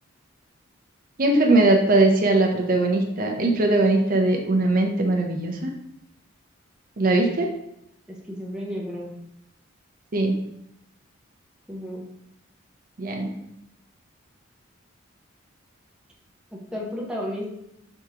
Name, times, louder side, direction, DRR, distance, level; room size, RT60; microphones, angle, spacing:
voice 1, 1.2-5.7 7.0-7.5 10.1-10.3 13.0-13.3, right 2 dB, 45° right, 2 dB, 0.5 m, -20 dB
voice 2, 8.1-9.1 11.7-12.1 16.5-17.5, equal, 5° right, -3 dB, 0.8 m, -33 dB
3.5 x 2.8 x 4.7 m, 0.79 s
head